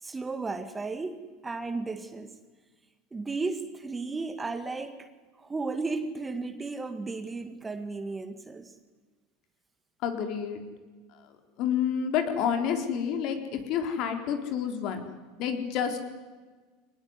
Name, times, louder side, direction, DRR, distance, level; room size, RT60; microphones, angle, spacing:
voice 1, 0.0-2.4 3.1-5.1 5.4-8.7, right 3 dB, 15° right, 9 dB, 2.0 m, -34 dB
voice 2, 10.0-10.6 11.6-15.1 15.4-16.0, left 8 dB, 55° left, 6 dB, 4.1 m, -29 dB
23.5 x 19.5 x 9.8 m, 1.3 s
supercardioid pair, 115°, 0 cm